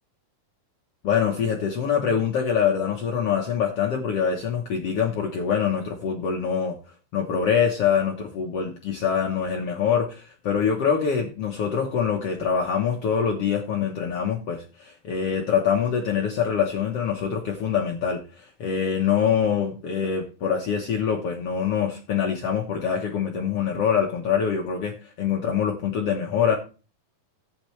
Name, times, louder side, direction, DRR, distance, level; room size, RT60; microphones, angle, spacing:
voice 1, 1.0-6.8 7.1-26.6, left 7 dB, 60° left, 1.6 m, -24 dB
15.5 x 8.8 x 3.2 m
omnidirectional pair, 4.1 m